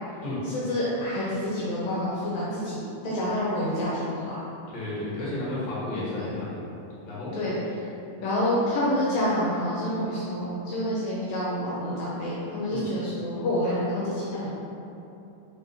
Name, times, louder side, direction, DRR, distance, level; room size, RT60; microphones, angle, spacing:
voice 1, 0.5-4.4 6.2-6.3 7.3-7.5 8.2-14.5, left 1 dB, 75° left, -7 dB, 1.7 m, -28 dB
voice 2, 4.7-6.6 7.0-7.3 12.7-12.8, left 2 dB, 50° left, -9 dB, 1.3 m, -32 dB
4.3 x 3.8 x 2.7 m, 2.8 s
omnidirectional pair, 3.3 m